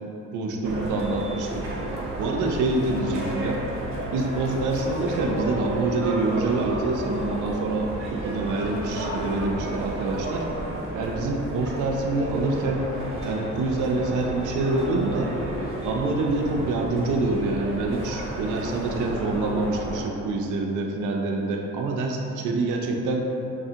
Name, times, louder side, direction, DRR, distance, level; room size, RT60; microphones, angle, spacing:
voice 1, 0.3-1.7 2.2-3.6 4.1-10.5 10.9-12.9 13.2-15.3 15.8-23.3, right 2 dB, 80° right, 1 dB, 0.6 m, -26 dB
sound 1, 0.6-20.0, right 1 dB, 45° right, 0.9 m, -32 dB
5.8 x 2.3 x 2.8 m, 3.0 s
cardioid pair, 90°, 30 cm